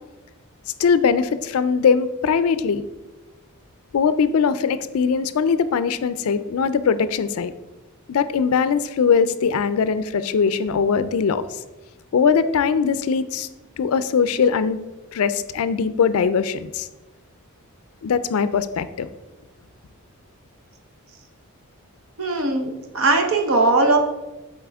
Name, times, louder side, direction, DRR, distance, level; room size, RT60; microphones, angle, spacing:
voice 1, 0.8-2.8 3.9-7.5 8.1-11.5 12.1-13.5 13.8-14.8 15.1-16.9 18.0-19.1, left 6 dB, 70° left, 13 dB, 0.4 m, -21 dB
voice 2, 22.2-24.0, right 2 dB, 60° right, 4 dB, 0.9 m, -19 dB
7.6 x 4.3 x 3.5 m, 1.1 s
head